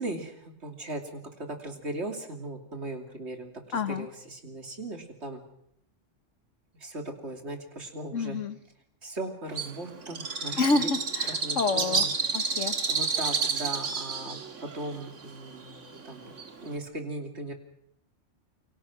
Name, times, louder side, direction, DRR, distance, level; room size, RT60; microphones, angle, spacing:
voice 1, 0.0-5.4 6.8-8.4 9.0-10.9 11.3-12.1 12.9-16.3 16.6-17.5, right 2 dB, 60° right, 4 dB, 3.3 m, -38 dB
voice 2, 3.7-4.1 8.1-8.6 10.6-12.1 12.3-12.7, left 3 dB, 85° left, 11 dB, 1.7 m, -28 dB
Bird, 9.5-16.8, right 5 dB, 80° right, 2.2 m, -30 dB
29.0 x 23.5 x 6.2 m, 0.73 s
omnidirectional pair, 1.3 m